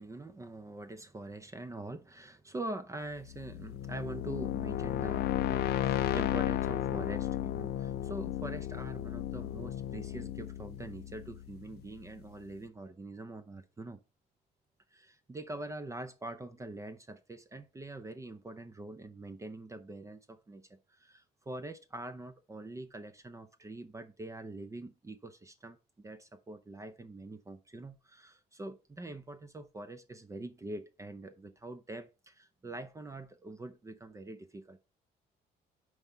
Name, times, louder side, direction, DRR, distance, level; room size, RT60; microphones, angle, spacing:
voice 1, 0.0-14.0 14.9-34.8, right 2 dB, 20° right, 0.6 m, -44 dB
sound 1, 3.2-12.0, left 12 dB, 70° left, 0.5 m, -34 dB
5.3 x 4.7 x 5.3 m
cardioid pair, 110°, 17 cm